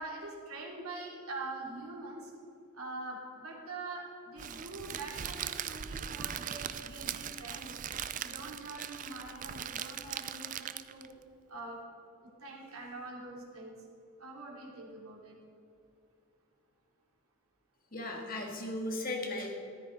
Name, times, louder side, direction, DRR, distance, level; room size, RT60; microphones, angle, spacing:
voice 1, 0.0-2.3 2.7-7.8 8.1-11.1 11.5-11.8 12.2-13.7 14.2-15.4, right 2 dB, 85° right, -2 dB, 2.8 m, -44 dB
Crackle, 4.4-11.1, right 9 dB, 35° right, 0.4 m, -40 dB
voice 2, 17.9-19.6, left 2 dB, 40° left, 1 dB, 1.8 m, -36 dB
14.0 x 13.5 x 3.8 m, 2.6 s
head